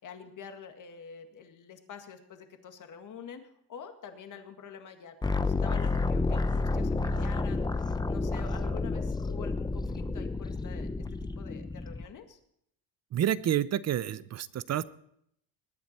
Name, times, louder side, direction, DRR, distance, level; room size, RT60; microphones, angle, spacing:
voice 1, 0.0-12.4, left 6 dB, 45° left, 6 dB, 1.9 m, -46 dB
sound 1, 5.2-12.1, left 3 dB, 10° left, 0.7 m, -30 dB
voice 2, 13.1-14.8, right 11 dB, 40° right, 18 dB, 0.6 m, -29 dB
21.0 x 9.4 x 4.3 m, 0.72 s
cardioid pair, 100°, 42 cm